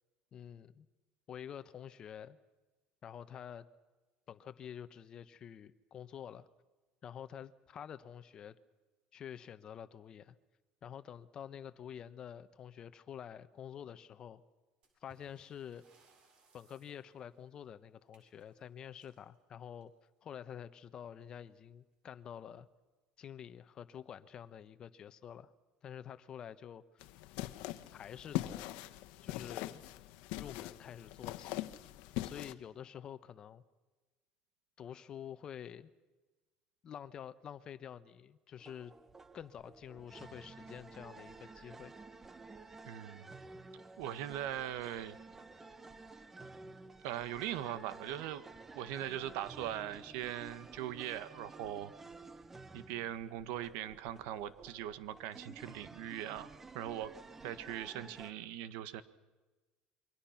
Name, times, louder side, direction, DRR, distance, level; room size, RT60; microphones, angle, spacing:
voice 1, 0.3-0.9 1.3-2.4 3.0-3.6 4.3-6.5 7.0-8.5 9.1-10.4 10.8-14.4 15.0-15.8 16.5-19.9 20.2-22.7 23.2-25.5 25.8-27.1 27.9-28.8 29.2-29.8 30.4-31.6 32.2-33.6 34.8-35.9 36.8-38.9 39.3-41.9, left 9 dB, 30° left, 12 dB, 1.1 m, -48 dB
sound 1, 14.8-20.2 21.5-21.6 21.9-22.0 22.7-22.8 23.4-23.7, right 4 dB, 40° right, 7.4 m, -70 dB
sound 2, 27.0-32.5, left 16 dB, 75° left, 1.3 m, -41 dB
sound 3, 38.6-58.3, right 3 dB, 15° right, 1.0 m, -53 dB
voice 2, 42.8-43.3 44.0-45.2 47.0-48.4 48.7-51.9 52.7-57.1 57.4-59.0, right 12 dB, 75° right, 13 dB, 1.5 m, -40 dB
28.5 x 24.0 x 5.9 m, 1.2 s
cardioid pair, 160°, 2 cm